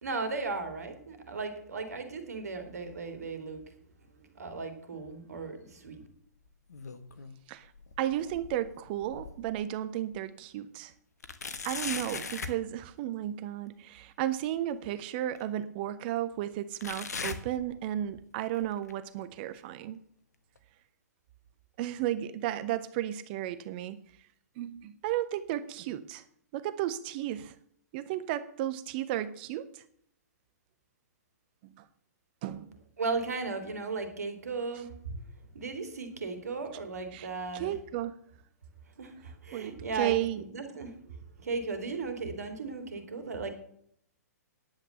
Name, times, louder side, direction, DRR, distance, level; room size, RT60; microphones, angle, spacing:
voice 1, 0.0-3.6 4.1-6.0 33.0-35.2 35.5-37.7 39.0-43.5, right 4 dB, 65° right, 8 dB, 2.7 m, -36 dB
sound 1, 6.5-7.4 7.7-9.6 10.1-10.2 11.2-12.6 14.3-14.4 15.4-15.5 16.8-18.2 18.5-18.9 19.6-19.7 20.6-20.7, left 5 dB, 65° left, 1.4 m, -40 dB
voice 2, 8.0-10.9 11.6-20.0 21.8-24.0 24.6-26.2 26.5-27.6 27.9-29.8 31.6-31.9 32.4-32.7 37.1-37.3 37.5-38.2 39.5-40.4, right 12 dB, 35° right, 14 dB, 0.7 m, -34 dB
10.5 x 8.3 x 6.7 m, 0.65 s
figure-of-eight pair, 120°, 9 cm